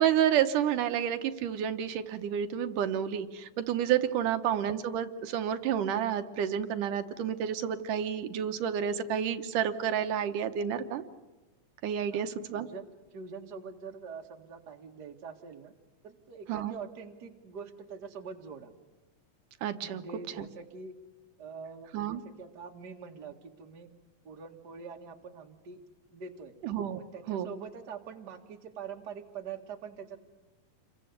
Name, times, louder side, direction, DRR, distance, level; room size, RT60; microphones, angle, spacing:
voice 1, 0.0-11.0 11.8-12.7 16.5-16.7 19.6-20.0 20.4-20.5 21.9-22.2 26.6-27.0 27.3-27.5, right 9 dB, 80° right, 8 dB, 2.5 m, -30 dB
voice 2, 12.1-15.7 16.0-18.7 19.8-20.9 21.4-23.9 24.2-25.8 26.1-26.5 27.0-30.2, right 6 dB, 35° right, 3 dB, 2.0 m, -44 dB
28.5 x 22.5 x 8.1 m, 1.2 s
omnidirectional pair, 3.7 m